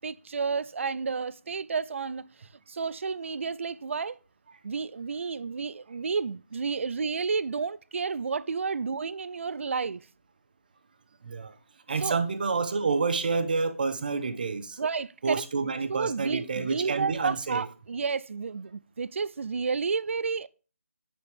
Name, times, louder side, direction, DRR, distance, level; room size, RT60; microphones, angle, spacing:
voice 1, 0.0-4.2 4.6-10.0 12.0-12.2 14.8-15.4 15.9-20.5, right 5 dB, 55° right, 0.3 m, -31 dB
voice 2, 11.2-11.5 11.9-14.8 15.2-17.6, right 4 dB, 35° right, 0.8 m, -29 dB
7.6 x 6.9 x 3.4 m
figure-of-eight pair, 170°, 8 cm